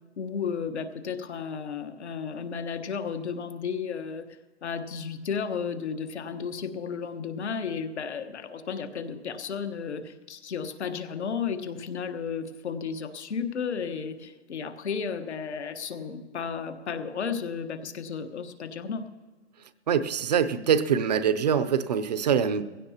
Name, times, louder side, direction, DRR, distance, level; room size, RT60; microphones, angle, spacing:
voice 1, 0.2-4.3 4.6-19.0, left 6 dB, 65° left, 8 dB, 1.4 m, -33 dB
voice 2, 19.9-22.7, right 7 dB, 35° right, 13 dB, 0.6 m, -24 dB
20.5 x 16.0 x 2.9 m, 1.3 s
hypercardioid pair, 160°, 36 cm